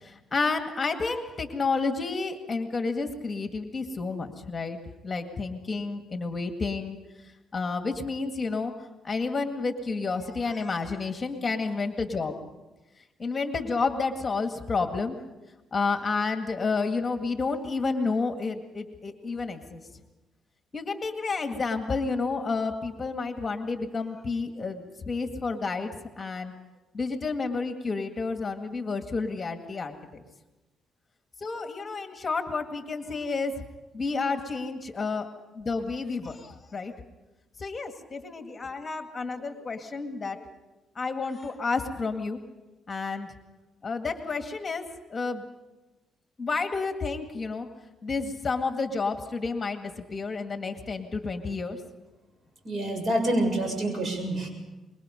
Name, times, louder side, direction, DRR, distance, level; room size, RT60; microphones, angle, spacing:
voice 1, 0.0-4.8 5.0-7.0 7.5-8.7 9.0-12.3 13.2-15.2 15.7-19.8 20.7-26.5 26.9-30.2 31.4-33.5 33.9-35.3 35.6-36.9 37.6-40.6 41.0-42.4 42.9-43.3 43.8-45.4 46.4-47.7 48.0-51.8, left 4 dB, 30° left, 5 dB, 2.0 m, -30 dB
voice 2, 52.6-54.5, right 1 dB, 45° right, 3 dB, 7.1 m, -27 dB
25.5 x 22.0 x 5.3 m, 1.1 s
cardioid pair, 90°, 0 cm